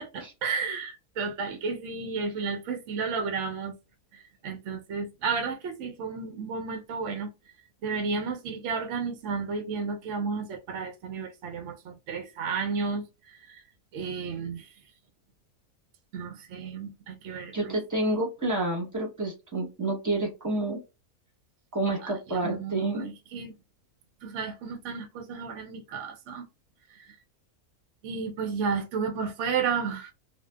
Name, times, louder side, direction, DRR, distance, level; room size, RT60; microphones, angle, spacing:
voice 1, 0.0-3.7 4.1-7.3 7.8-13.6 13.9-14.7 16.1-17.7 22.0-23.5 24.2-26.5 27.0-27.1 28.0-30.1, right 5 dB, 70° right, 0.8 m, -32 dB
voice 2, 17.5-20.8 21.7-23.1, right 2 dB, 15° right, 0.8 m, -29 dB
2.6 x 2.2 x 2.2 m
omnidirectional pair, 1.6 m